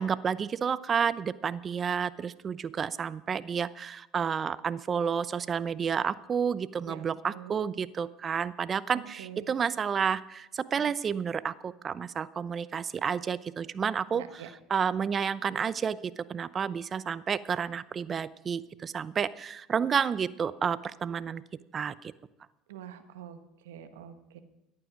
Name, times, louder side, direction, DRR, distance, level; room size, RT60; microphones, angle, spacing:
voice 1, 0.0-21.4 21.7-22.1, right 7 dB, 35° right, 17 dB, 0.6 m, -30 dB
voice 2, 6.9-7.7 9.2-9.5 14.1-14.5 22.7-23.4 23.6-24.4, right 10 dB, 85° right, 9 dB, 1.3 m, -45 dB
14.5 x 11.0 x 5.0 m, 0.90 s
hypercardioid pair, 80°, 0 cm